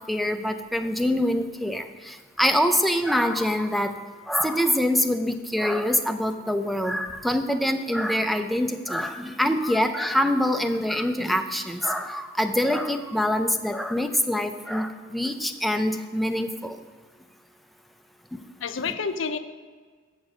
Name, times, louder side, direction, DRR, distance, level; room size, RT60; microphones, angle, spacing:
voice 1, 0.1-3.9 4.3-16.8 18.3-18.4, left 1 dB, ahead, 6 dB, 0.4 m, -25 dB
voice 2, 9.5-9.9 10.4-10.6 11.9-12.1 18.6-19.4, left 5 dB, 65° left, 10 dB, 0.6 m, -31 dB
7.4 x 6.5 x 6.2 m, 1.5 s
head